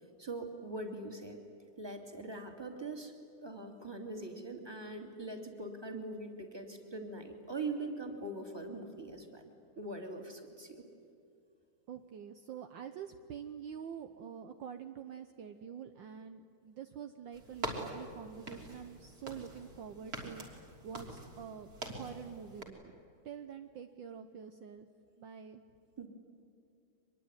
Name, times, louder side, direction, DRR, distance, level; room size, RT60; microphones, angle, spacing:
voice 1, 0.2-1.4 1.8-3.1 3.4-9.5 9.8-10.8 26.0-26.1, right 2 dB, 10° right, 4 dB, 2.6 m, -42 dB
voice 2, 11.9-23.0 23.2-24.9 25.2-25.6, right 8 dB, 65° right, 7 dB, 1.5 m, -46 dB
sound 1, 17.3-22.6, right 1 dB, 40° right, 3.8 m, -44 dB
24.5 x 22.0 x 9.6 m, 2.6 s
omnidirectional pair, 2.4 m